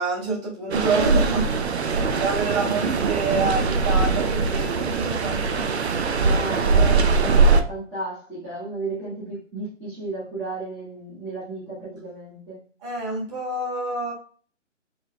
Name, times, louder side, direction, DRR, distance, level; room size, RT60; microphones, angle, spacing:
voice 1, 0.0-1.5 1.8-5.4 6.7-7.0 12.8-14.1, right 3 dB, 25° right, -5 dB, 1.7 m, -27 dB
sound 1, 0.7-7.6, right 4 dB, 60° right, 0.6 m, -21 dB
voice 2, 6.1-12.6, right 2 dB, 5° right, -14 dB, 0.8 m, -33 dB
3.9 x 3.1 x 3.6 m, 0.42 s
hypercardioid pair, 155°, 38 cm